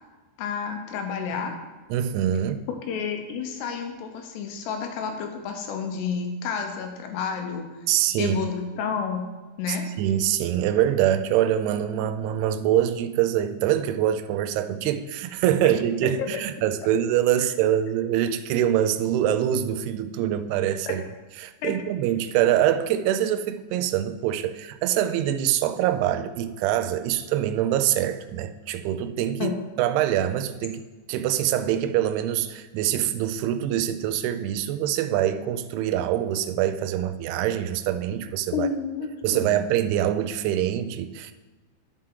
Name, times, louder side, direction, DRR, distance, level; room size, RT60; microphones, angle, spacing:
voice 1, 0.4-1.5 2.9-7.7 8.2-9.3 9.6-9.9 16.2-16.3 17.4-17.5 20.9-21.0 21.6-21.7 29.4-29.6 38.5-39.6, left 6 dB, 80° left, 4 dB, 3.0 m, -30 dB
voice 2, 1.9-2.6 7.9-8.4 9.7-21.0 21.4-29.5 29.8-30.8 31.1-38.7 39.2-41.3, right 11 dB, 85° right, 9 dB, 2.4 m, -24 dB
11.0 x 5.6 x 3.8 m, 1.3 s
omnidirectional pair, 4.8 m